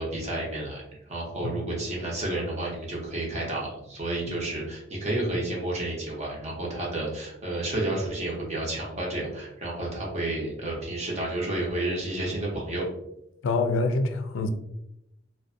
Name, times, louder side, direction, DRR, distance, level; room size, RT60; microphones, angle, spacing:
voice 1, 0.0-12.8, right 1 dB, 35° right, -3 dB, 0.8 m, -31 dB
voice 2, 13.4-14.5, left 3 dB, 75° left, 6 dB, 0.3 m, -25 dB
2.5 x 2.2 x 2.5 m, 0.81 s
head